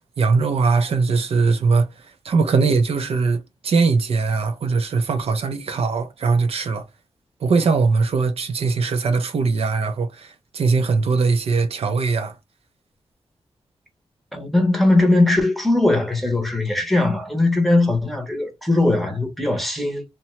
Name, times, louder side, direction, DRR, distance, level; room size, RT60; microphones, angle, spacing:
voice 1, 0.2-1.9 2.2-6.8 7.4-12.3, right 4 dB, 70° right, 0.5 m, -20 dB
voice 2, 14.3-20.0, left 2 dB, ahead, 0.8 m, -19 dB
2.8 x 2.2 x 3.0 m
wide cardioid pair, 145°, 11 cm